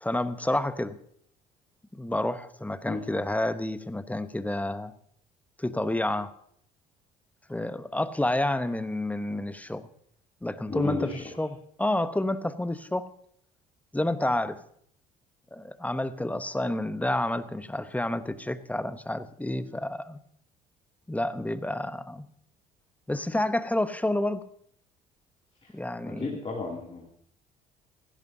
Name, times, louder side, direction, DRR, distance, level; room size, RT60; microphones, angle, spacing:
voice 1, 0.0-1.0 1.9-4.9 5.6-6.3 7.5-9.9 10.4-11.1 11.4-13.1 13.9-14.6 15.5-20.2 21.1-22.3 23.1-24.4 25.7-26.4, left 1 dB, 5° left, 12 dB, 1.0 m, -29 dB
voice 2, 10.7-11.2 25.6-25.7 26.0-27.1, left 3 dB, 30° left, -2 dB, 2.8 m, -32 dB
16.5 x 16.0 x 2.8 m, 0.65 s
hypercardioid pair, 55°, 20 cm